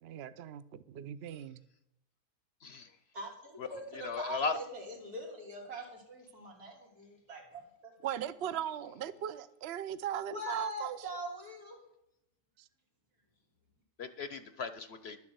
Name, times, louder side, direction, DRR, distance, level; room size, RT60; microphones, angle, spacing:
voice 1, 0.0-1.6 8.0-11.0, right 10 dB, 60° right, 0.7 m, -38 dB
voice 2, 3.1-7.9 10.3-11.8, equal, 90° right, 3.8 m, -43 dB
voice 3, 4.0-4.6 14.0-15.2, left 4 dB, 55° left, 0.8 m, -36 dB
11.5 x 7.2 x 7.9 m
omnidirectional pair, 1.5 m